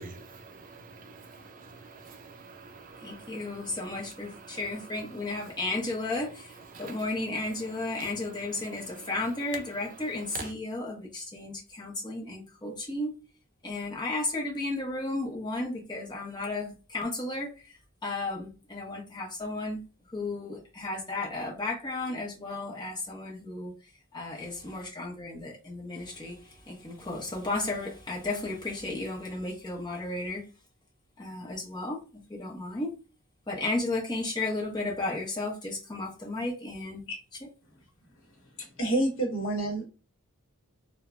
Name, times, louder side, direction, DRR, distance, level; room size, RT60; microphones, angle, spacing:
voice 1, 0.0-3.5 4.5-4.6 6.7-7.0 8.0-8.1 10.3-10.5, right 4 dB, 40° right, 0.5 m, -45 dB
voice 2, 3.0-13.2 13.6-19.8 20.1-23.7 24.1-30.4 31.2-32.9 33.5-37.1, left 2 dB, 20° left, 0.7 m, -34 dB
voice 3, 38.6-39.8, right 2 dB, 60° left, 0.9 m, -28 dB
3.1 x 2.1 x 2.3 m
head